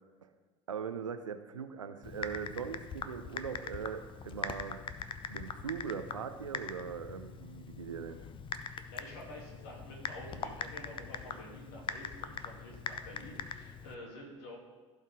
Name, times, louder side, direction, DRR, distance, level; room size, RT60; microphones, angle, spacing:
voice 1, 0.7-4.8 5.3-8.2, right 7 dB, 80° right, 9 dB, 0.7 m, -40 dB
Typing, 2.0-13.9, left 6 dB, 30° left, 0.7 m, -42 dB
voice 2, 8.7-14.6, left 1 dB, 60° left, -1 dB, 2.7 m, -49 dB
16.0 x 5.5 x 3.6 m, 1.4 s
figure-of-eight pair, 65°, 16 cm